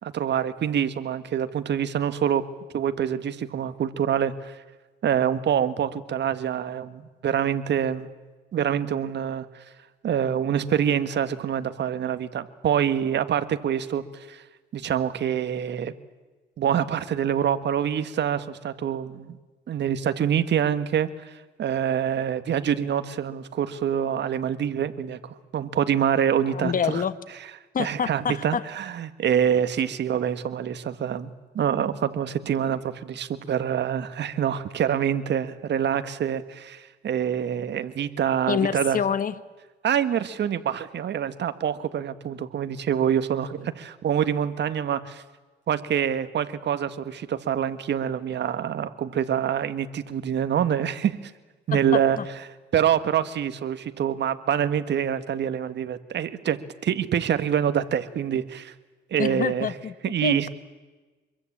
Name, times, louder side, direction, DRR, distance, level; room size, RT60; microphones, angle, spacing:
voice 1, 0.0-2.4 2.7-4.6 5.0-8.1 8.5-9.6 10.0-14.4 14.7-15.9 16.6-19.4 19.7-27.0 27.8-31.3 31.5-39.0 39.8-45.2 45.7-51.3 51.7-52.2 52.7-56.6 56.8-58.7 59.1-59.7 60.0-60.5, right 9 dB, 60° right, 11 dB, 1.7 m, -26 dB
voice 2, 26.4-27.1 27.7-28.6 38.5-39.4 51.7-52.3 59.2-59.9 60.2-60.5, left 7 dB, 45° left, 15 dB, 1.2 m, -27 dB
25.5 x 22.0 x 8.7 m, 1.3 s
cardioid pair, 90°, 20 cm